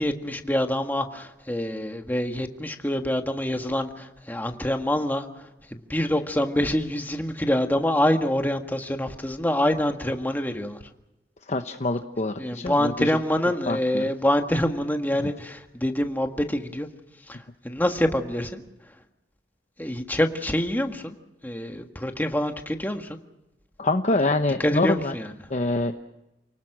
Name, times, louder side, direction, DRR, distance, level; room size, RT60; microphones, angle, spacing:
voice 1, 0.0-5.3 5.7-10.8 12.4-16.9 17.3-18.6 19.8-21.1 21.4-23.2 24.6-25.3, left 1 dB, 10° left, 5 dB, 1.7 m, -26 dB
voice 2, 11.5-13.1 13.7-14.1 15.2-15.3 23.8-25.1 25.5-25.9, left 2 dB, 40° left, 6 dB, 1.0 m, -25 dB
29.5 x 19.5 x 6.1 m, 0.93 s
head